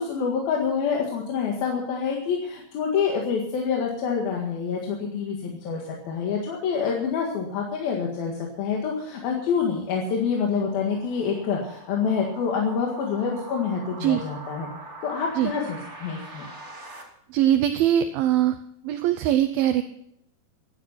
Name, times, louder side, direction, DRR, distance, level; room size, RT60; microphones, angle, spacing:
voice 1, 0.0-8.3 8.6-14.7 15.0-16.4, left 6 dB, 70° left, -1 dB, 3.6 m, -27 dB
sound 1, 8.3-17.0, right 2 dB, 20° right, 2.4 m, -44 dB
voice 2, 17.3-18.6 18.8-19.8, right 11 dB, 75° right, 9 dB, 2.4 m, -21 dB
15.5 x 12.0 x 5.8 m, 0.72 s
omnidirectional pair, 4.6 m